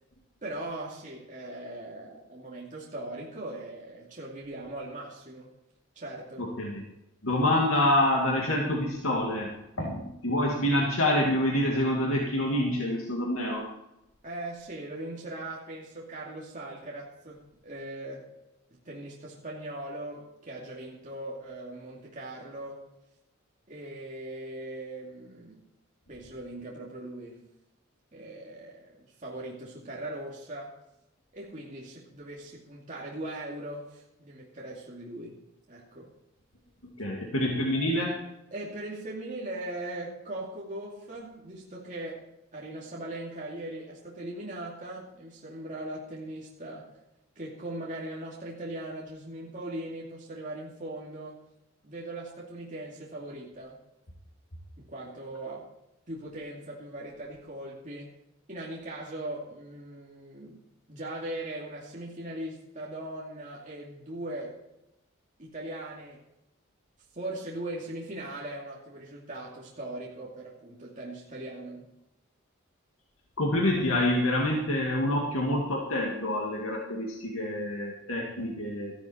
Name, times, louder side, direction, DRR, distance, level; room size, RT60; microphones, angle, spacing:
voice 1, 0.4-5.5 5.9-6.5 9.7-10.0 14.2-18.2 18.8-22.8 23.7-25.6 26.1-27.4 28.1-30.8 31.3-35.3 35.7-36.1 38.5-42.3 42.5-46.9 47.4-51.4 51.8-53.8 54.8-55.6 56.1-58.1 58.5-60.6 60.9-64.6 65.4-66.2 67.1-71.9, right 1 dB, 40° right, -4 dB, 2.6 m, -39 dB
voice 2, 6.4-6.8 7.2-9.5 9.8-13.6 37.0-38.2 73.4-78.9, left 1 dB, 75° left, -2 dB, 2.4 m, -27 dB
14.5 x 12.0 x 4.5 m, 0.89 s
head